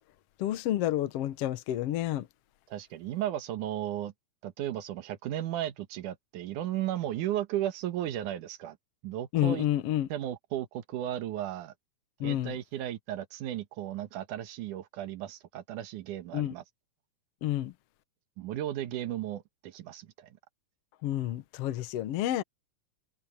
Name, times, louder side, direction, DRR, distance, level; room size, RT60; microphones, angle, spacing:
voice 1, 0.4-2.3 9.3-10.1 12.2-12.6 16.3-16.5 17.4-17.7 21.0-22.4, left 13 dB, 65° left, 1.7 m, -29 dB
voice 2, 2.7-4.1 4.4-8.8 9.0-9.7 10.1-11.7 12.2-16.6 18.4-20.3, right 12 dB, 85° right, 2.8 m, -35 dB
omnidirectional pair, 3.5 m